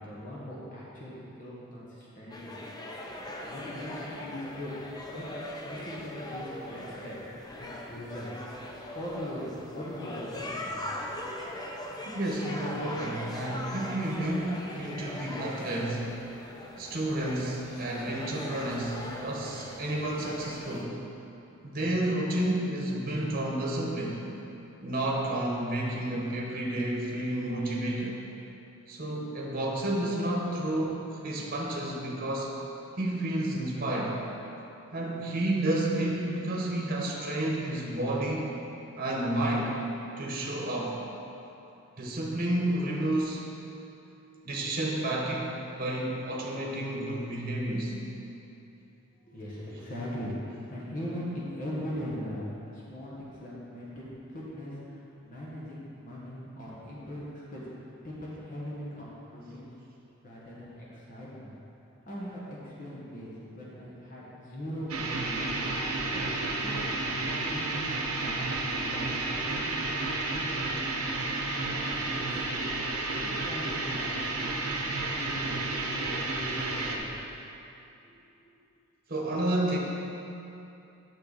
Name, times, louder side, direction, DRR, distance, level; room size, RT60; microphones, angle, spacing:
voice 1, 0.0-2.6 3.4-4.7 5.1-5.2 5.7-7.1 7.6-8.3 8.7-11.0 49.3-52.4 52.7-57.6 58.0-59.7 60.2-61.5 62.0-65.7 66.1-66.2 66.6-66.8 67.2-69.9 70.3-71.0 71.5-72.6 73.2-74.4 75.1-77.1 78.0-78.2, equal, 40° left, -7 dB, 1.4 m, -40 dB
sound 1, 2.3-20.8, left 1 dB, 20° left, 0.6 m, -40 dB
voice 2, 12.1-16.1 16.8-21.0 21.6-24.2 24.8-28.2 28.9-32.6 33.0-34.2 34.9-38.5 39.0-39.7 40.2-41.0 42.0-43.4 44.4-48.0 79.1-79.8, right 1 dB, 40° right, -2 dB, 1.2 m, -30 dB
sound 2, 64.9-77.0, right 2 dB, 75° right, 1.0 m, -31 dB
9.0 x 6.8 x 4.1 m, 2.8 s
head